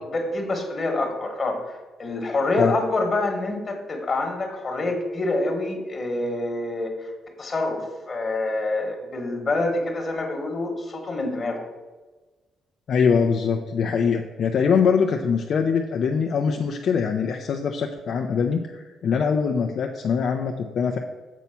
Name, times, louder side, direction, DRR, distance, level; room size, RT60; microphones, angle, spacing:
voice 1, 0.1-7.1 7.4-11.7, left 2 dB, 40° left, 3 dB, 1.3 m, -26 dB
voice 2, 12.9-21.0, left 6 dB, 60° left, 3 dB, 0.5 m, -23 dB
7.2 x 4.2 x 5.7 m, 1.3 s
cardioid pair, 90°, 0 cm